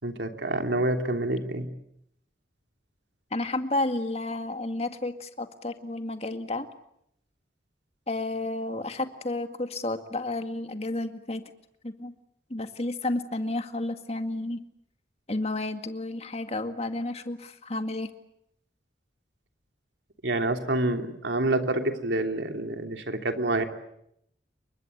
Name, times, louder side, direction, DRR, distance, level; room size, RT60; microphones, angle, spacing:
voice 1, 0.0-1.7 20.2-23.6, right 2 dB, 80° right, 5 dB, 3.1 m, -27 dB
voice 2, 3.3-6.7 8.1-11.4 11.8-12.1 12.5-14.6 15.3-18.1, left 2 dB, 35° left, 7 dB, 2.0 m, -31 dB
29.0 x 24.0 x 8.2 m, 0.76 s
head